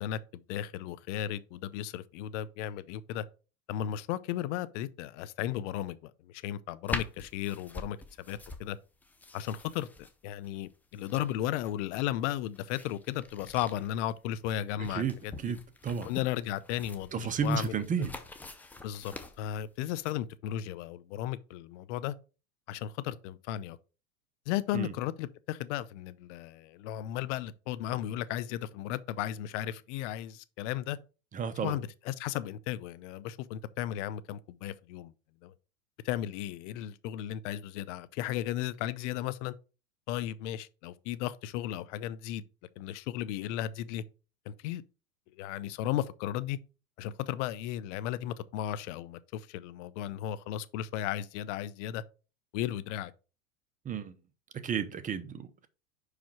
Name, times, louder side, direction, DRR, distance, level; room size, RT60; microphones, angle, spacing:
voice 1, 0.0-3.2 3.7-8.8 9.3-9.9 10.2-15.5 16.0-17.8 18.8-22.1 22.7-23.8 24.5-31.0 31.6-35.1 35.4-35.5 36.0-39.5 40.1-42.4 42.8-44.0 44.5-44.8 45.4-46.6 47.0-52.0 52.5-53.1, left 12 dB, 60° left, 0.7 m, -35 dB
sound 1, 6.9-20.1, left 3 dB, 5° left, 0.3 m, -45 dB
voice 2, 15.4-16.1 17.1-18.2 24.7-24.9 31.3-31.8 53.8-54.1 54.6-55.7, right 6 dB, 20° right, 0.7 m, -32 dB
5.2 x 4.9 x 4.6 m
hypercardioid pair, 120°, 42 cm